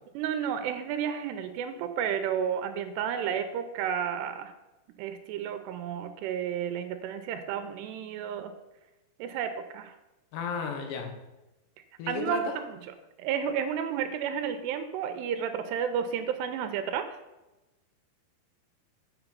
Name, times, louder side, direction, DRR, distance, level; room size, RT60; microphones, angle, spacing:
voice 1, 0.2-4.5 5.0-8.5 9.2-10.0 12.1-12.8 13.2-17.1, right 8 dB, 85° right, 8 dB, 2.8 m, -31 dB
voice 2, 10.3-11.1 12.0-12.6, left 5 dB, 80° left, 4 dB, 3.4 m, -33 dB
7.3 x 7.0 x 5.4 m, 1.0 s
omnidirectional pair, 4.9 m